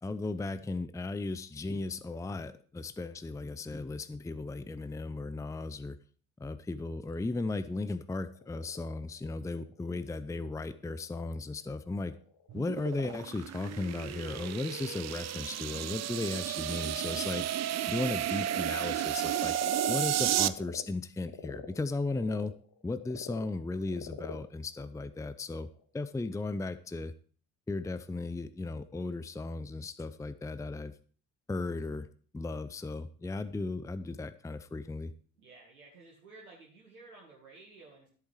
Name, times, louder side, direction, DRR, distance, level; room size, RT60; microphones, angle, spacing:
voice 1, 0.0-6.0 6.4-12.1 12.5-17.5 17.9-19.5 19.9-22.5 22.8-25.7 25.9-27.1 27.7-30.9 31.5-32.1 32.3-35.1, left 3 dB, 5° left, 14 dB, 0.6 m, -36 dB
Frog, 7.9-20.8 21.2-25.8, left 7 dB, 55° left, 1.9 m, -48 dB
sound 1, 12.5-20.5, right 12 dB, 40° right, 0.6 m, -32 dB
voice 2, 35.4-38.1, right 3 dB, 75° right, -3 dB, 2.1 m, -54 dB
14.0 x 8.1 x 4.7 m, 0.43 s
figure-of-eight pair, 45°, 44 cm